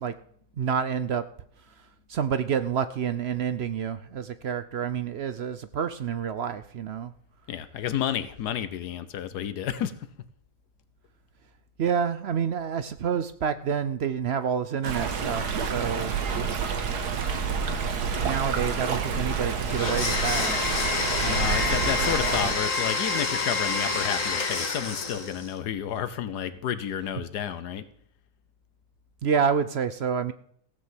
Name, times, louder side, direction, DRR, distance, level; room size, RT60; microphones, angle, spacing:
voice 1, 0.6-1.3 2.1-7.1 11.8-16.2 18.2-20.5 29.2-30.3, right 7 dB, 60° right, 12 dB, 0.6 m, -28 dB
voice 2, 7.5-9.9 21.2-27.8, left 9 dB, 90° left, 13 dB, 1.4 m, -31 dB
Stream, 14.8-22.5, right 5 dB, 80° right, 1.8 m, -28 dB
Domestic sounds home sounds, 19.7-25.5, left 4 dB, 55° left, 1.9 m, -28 dB
16.0 x 6.4 x 7.6 m, 0.64 s
omnidirectional pair, 1.7 m